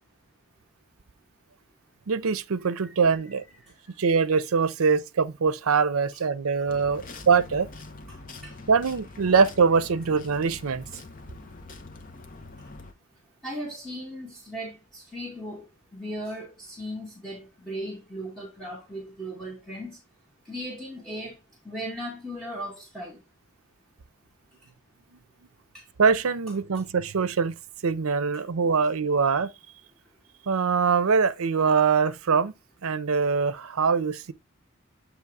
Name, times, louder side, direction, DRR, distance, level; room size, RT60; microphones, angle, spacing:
voice 1, 2.1-3.4 4.0-7.7 8.7-10.9 26.0-27.6 27.8-29.5 30.5-32.5 32.8-34.3, right 5 dB, 85° right, 0.6 m, -23 dB
voice 2, 2.6-2.9 3.6-3.7 6.1-6.2 7.0-7.1 8.1-8.5 13.4-15.6 15.9-20.0 20.4-21.3 21.6-23.2 25.7-25.8 28.3-28.4, equal, 5° left, 1.7 m, -37 dB
sound 1, 6.7-12.9, left 3 dB, 40° left, 0.8 m, -44 dB
8.1 x 3.0 x 4.7 m
head